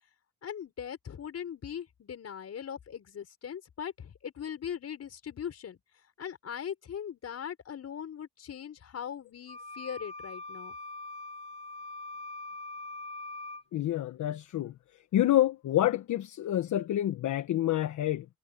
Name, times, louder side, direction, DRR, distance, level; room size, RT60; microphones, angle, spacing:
voice 1, 0.4-5.8 6.2-10.8, left 8 dB, 55° left, 5.6 m, -40 dB
sound 1, 9.5-13.6, left 2 dB, 20° left, 4.7 m, -42 dB
voice 2, 13.7-14.7 15.1-18.2, left 13 dB, 75° left, 1.4 m, -28 dB
cardioid pair, 90°, 30 cm